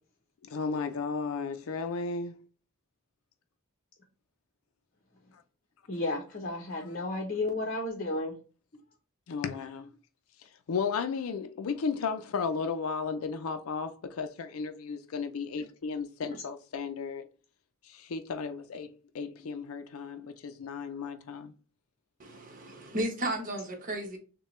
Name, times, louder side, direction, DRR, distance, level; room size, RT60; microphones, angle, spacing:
voice 1, 0.4-2.4 9.3-9.9 10.7-17.2 17.9-21.5, left 5 dB, 90° left, 0.5 m, -34 dB
voice 2, 5.9-8.3 15.6-15.7 19.4-19.5, left 2 dB, 45° left, 0.7 m, -33 dB
voice 3, 22.2-24.2, right 1 dB, 40° right, 1.0 m, -34 dB
6.4 x 2.2 x 3.1 m
head